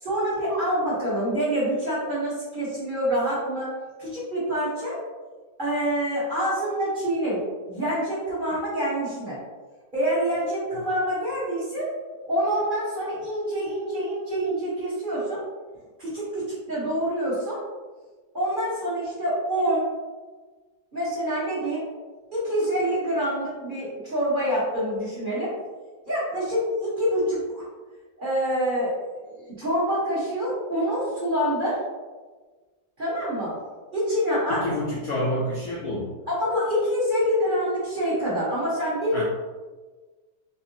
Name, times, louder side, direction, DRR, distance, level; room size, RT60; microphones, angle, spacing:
voice 1, 0.0-3.7 4.0-5.0 5.6-7.4 7.7-9.4 9.9-11.9 12.3-15.4 16.0-17.6 18.3-19.9 20.9-21.8 22.3-25.5 26.0-27.7 28.2-28.9 29.3-31.8 33.0-33.5 33.9-34.6 36.3-39.2, equal, 30° right, -9 dB, 1.2 m, -26 dB
voice 2, 34.5-36.1 39.1-39.2, left 1 dB, 65° left, -5 dB, 0.9 m, -28 dB
3.6 x 3.2 x 2.7 m, 1.3 s
omnidirectional pair, 2.0 m